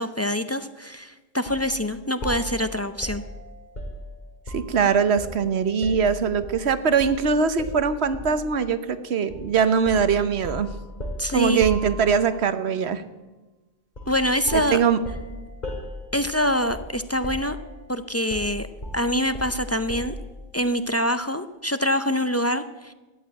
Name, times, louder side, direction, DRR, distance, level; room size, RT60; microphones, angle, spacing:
voice 1, 0.0-3.2 11.2-11.6 14.1-14.8 16.1-17.6 17.9-18.7 18.9-20.1 20.5-22.9, equal, 20° left, 11 dB, 0.4 m, -25 dB
sound 1, 1.5-1.7 2.2-4.8 5.2-6.6 7.0-7.2 7.6-8.5 9.3-9.5 9.9-12.4 13.9-14.2 14.5-17.0 17.2-17.9 18.3-20.3, left 1 dB, 45° left, 2.6 m, -36 dB
voice 2, 4.5-10.7 11.3-13.0 14.5-15.0, right 6 dB, 90° right, 12 dB, 1.2 m, -22 dB
13.5 x 9.3 x 8.9 m, 1.2 s
omnidirectional pair, 1.1 m